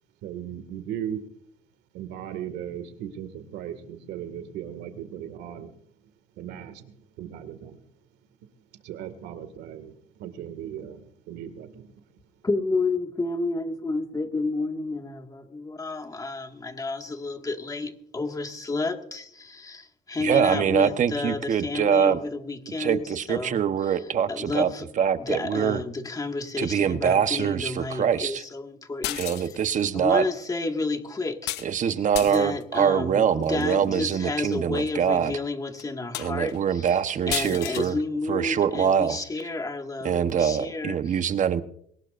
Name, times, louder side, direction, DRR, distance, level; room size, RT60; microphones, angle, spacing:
voice 1, 0.2-1.2 1.9-5.7 6.4-6.9 7.2-7.8 8.8-9.9 10.2-11.9, right 10 dB, 85° right, 10 dB, 2.1 m, -37 dB
voice 2, 12.4-24.0 24.3-24.9 25.2-29.6 29.9-37.0 37.3-41.2, left 3 dB, 20° left, 5 dB, 1.9 m, -31 dB
voice 3, 20.2-22.2 22.8-24.7 25.0-25.8 26.6-28.4 29.1-30.2 31.6-35.3 36.2-38.0 38.3-39.2 40.0-41.6, right 8 dB, 45° right, 10 dB, 1.1 m, -24 dB
sound 1, 29.0-29.8 31.5-31.7 32.1-32.6 33.4-33.7 34.5-34.6 35.1-35.2 35.8-35.9 36.1-36.6 37.3-37.9, left 14 dB, 85° left, 0.9 m, -33 dB
22.5 x 19.5 x 2.6 m, 0.66 s
cardioid pair, 110°, 17 cm